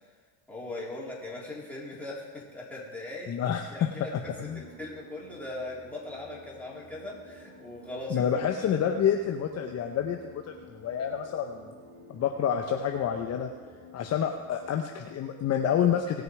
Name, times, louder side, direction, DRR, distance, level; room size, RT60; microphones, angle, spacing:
voice 1, 0.5-3.4 3.7-8.7, left 2 dB, 5° left, -6 dB, 3.8 m, -40 dB
voice 2, 3.3-4.6 8.1-11.7 12.1-13.5 13.9-16.2, left 8 dB, 40° left, 4 dB, 0.9 m, -28 dB
sound 1, 4.2-14.8, equal, 30° right, 2.9 m, -52 dB
19.0 x 6.6 x 4.8 m, 1.4 s
supercardioid pair, 105°, 41 cm